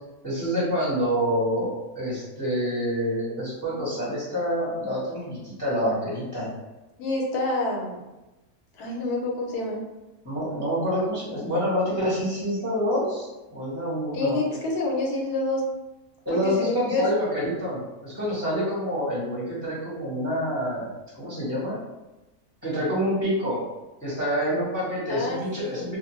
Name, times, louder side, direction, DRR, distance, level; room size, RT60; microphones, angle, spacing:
voice 1, 0.2-6.5 10.2-14.4 16.2-21.8 22.6-23.6 24.0-26.0, equal, 15° left, -9 dB, 0.8 m, -27 dB
voice 2, 7.0-8.0 8.7-9.8 14.1-15.6 16.3-17.1 25.1-25.9, left 2 dB, 85° left, -1 dB, 1.2 m, -28 dB
2.5 x 2.1 x 3.0 m, 1.0 s
omnidirectional pair, 1.6 m